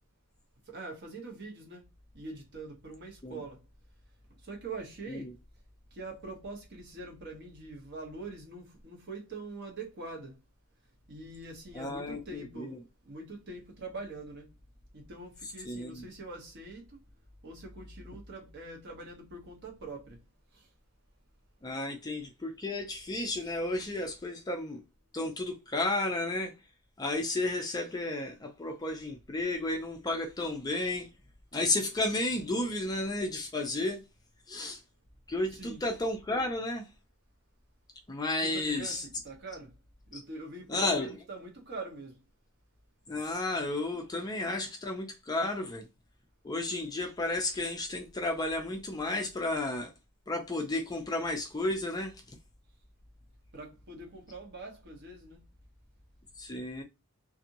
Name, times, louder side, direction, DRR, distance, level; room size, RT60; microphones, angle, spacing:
voice 1, 0.7-1.8 2.1-3.6 4.4-5.3 5.9-10.3 11.1-14.5 14.9-17.0 17.4-20.2 20.5-20.7 35.5-35.8 38.4-39.7 40.1-42.2 53.5-55.4, right 2 dB, 50° right, 1.0 m, -44 dB
voice 2, 11.7-12.8 15.6-16.0 21.6-24.8 25.1-26.5 27.0-31.1 31.5-34.0 34.5-34.8 35.3-36.8 38.1-39.0 40.7-41.1 43.1-45.9 46.4-49.9 50.3-52.1 56.4-56.8, left 2 dB, 15° left, 0.4 m, -32 dB
2.7 x 2.6 x 2.6 m
head